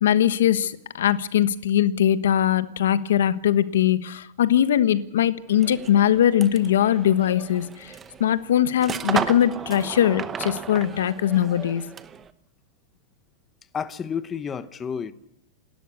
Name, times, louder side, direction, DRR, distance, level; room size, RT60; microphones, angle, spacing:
voice 1, 0.0-7.9 8.2-11.9, left 10 dB, 90° left, 1.3 m, -21 dB
sound 1, 5.5-12.3, right 7 dB, 15° right, 0.9 m, -34 dB
voice 2, 13.7-15.1, left 7 dB, 15° left, 0.8 m, -30 dB
29.0 x 13.0 x 8.3 m
supercardioid pair, 165°, 0 cm